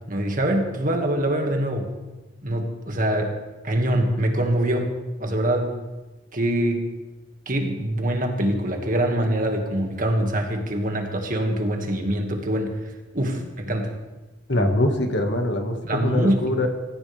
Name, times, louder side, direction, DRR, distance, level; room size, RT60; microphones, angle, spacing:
voice 1, 0.1-1.9 2.4-3.4 3.6-4.9 5.2-5.8 6.3-6.9 7.5-14.0 14.5-14.7 15.9-16.6, right 1 dB, 45° right, 3 dB, 2.1 m, -24 dB
voice 2, 14.5-16.7, left 1 dB, 65° left, 4 dB, 2.0 m, -23 dB
25.0 x 14.5 x 3.6 m, 1.2 s
head